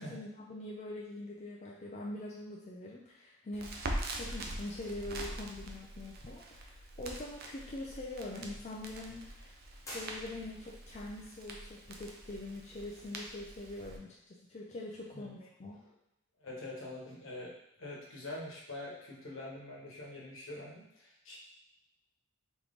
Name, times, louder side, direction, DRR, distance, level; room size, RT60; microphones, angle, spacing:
voice 1, 0.0-3.9 4.1-9.5 9.9-15.8, left 2 dB, 35° left, -3 dB, 0.4 m, -44 dB
Crackle, 3.5-14.0, right 1 dB, 50° right, 0.5 m, -44 dB
sound 1, 9.8-10.9, equal, 15° left, 1.2 m, -47 dB
voice 2, 16.4-21.4, left 1 dB, 70° left, -4 dB, 1.1 m, -45 dB
3.7 x 3.0 x 3.5 m, 0.84 s
head